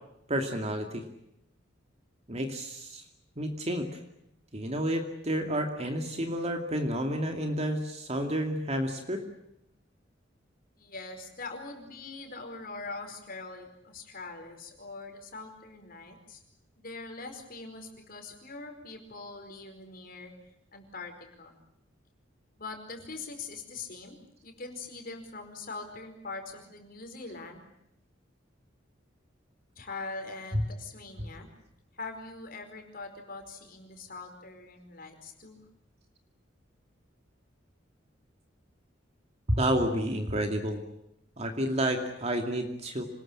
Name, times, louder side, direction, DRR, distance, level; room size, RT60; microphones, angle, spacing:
voice 1, 0.3-1.0 2.3-3.0 3.4-3.9 4.5-9.2 30.5-30.6 39.5-40.8 41.4-43.0, equal, 35° right, 4 dB, 2.5 m, -30 dB
voice 2, 10.8-16.4 16.8-20.3 20.7-21.6 22.6-24.2 24.4-27.6 29.8-31.5 31.9-35.7, left 3 dB, 50° left, 5 dB, 4.8 m, -42 dB
26.5 x 20.5 x 8.8 m, 0.80 s
head